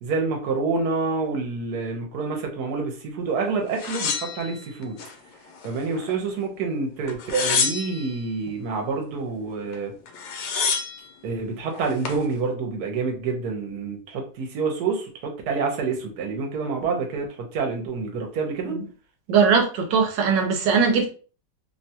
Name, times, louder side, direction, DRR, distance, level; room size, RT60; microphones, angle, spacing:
voice 1, 0.0-5.0 5.6-9.9 11.2-18.8, right 4 dB, 70° right, 1.3 m, -27 dB
sound 1, 3.8-5.1 5.6-6.4 7.1-8.2 9.7-9.8 10.1-11.0 11.7-12.2, left 5 dB, 75° left, 1.2 m, -28 dB
voice 2, 19.3-21.1, right 5 dB, 90° right, 1.3 m, -20 dB
3.1 x 2.2 x 2.7 m
omnidirectional pair, 1.9 m